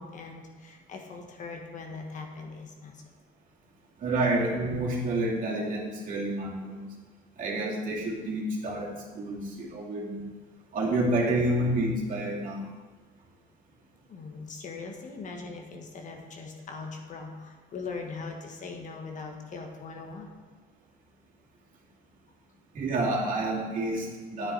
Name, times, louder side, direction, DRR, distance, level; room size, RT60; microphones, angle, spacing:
voice 1, 0.0-3.0 14.1-20.4, left 4 dB, 50° left, 2 dB, 1.5 m, -41 dB
voice 2, 4.0-6.9 7.4-10.2 10.7-12.7 22.7-24.5, right 1 dB, 50° right, -4 dB, 2.6 m, -29 dB
9.5 x 9.2 x 4.1 m, 1.3 s
cardioid pair, 110°, 17 cm